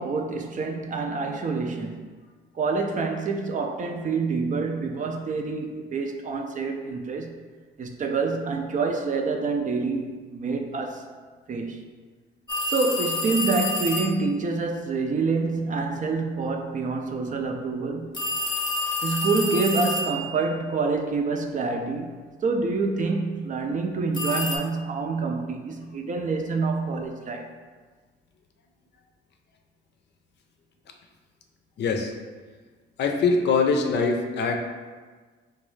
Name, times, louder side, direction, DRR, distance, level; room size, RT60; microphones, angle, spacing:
voice 1, 0.0-2.1 2.5-7.4 7.8-11.1 11.5-11.8 12.7-18.2 19.0-22.1 22.4-27.5, right 4 dB, 40° right, 0.4 m, -27 dB
sound 1, 12.5-14.2 18.1-20.4 24.1-24.6, left 2 dB, 20° left, 0.7 m, -28 dB
voice 2, 31.8-32.1 33.0-34.6, left 4 dB, 60° left, 0.5 m, -23 dB
3.8 x 2.3 x 3.1 m
cardioid pair, 90°, 20 cm